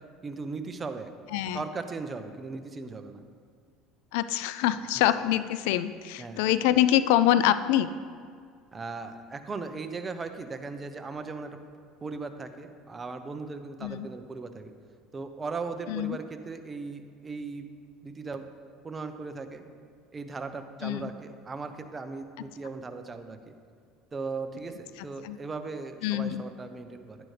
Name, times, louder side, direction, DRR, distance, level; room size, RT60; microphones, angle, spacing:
voice 1, 0.2-1.1 1.5-3.2 6.2-6.5 8.7-11.6 12.0-14.7 15.1-17.7 18.0-18.5 18.8-19.6 20.1-23.5 24.1-27.2, right 4 dB, 20° right, 7 dB, 0.8 m, -38 dB
voice 2, 1.3-1.6 4.1-7.9 13.8-14.1 15.9-16.2 20.8-21.1 25.2-25.4 26.0-26.4, left 12 dB, 80° left, 14 dB, 0.4 m, -25 dB
10.5 x 10.5 x 3.3 m, 2.1 s
supercardioid pair, 110°, 0 cm